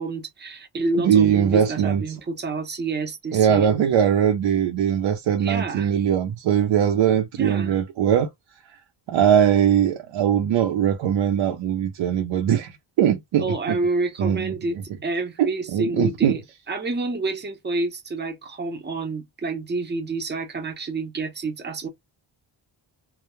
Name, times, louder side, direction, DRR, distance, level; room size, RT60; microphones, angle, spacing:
voice 1, 0.0-3.7 5.4-6.0 7.4-7.8 13.4-16.4 16.7-21.9, right 3 dB, 25° right, 0.6 m, -28 dB
voice 2, 0.9-2.0 3.3-8.3 9.1-12.7 13.0-13.8 14.2-14.5 15.4-16.4, right 9 dB, 70° right, 0.6 m, -20 dB
2.2 x 2.0 x 2.9 m
wide cardioid pair, 125°, 48 cm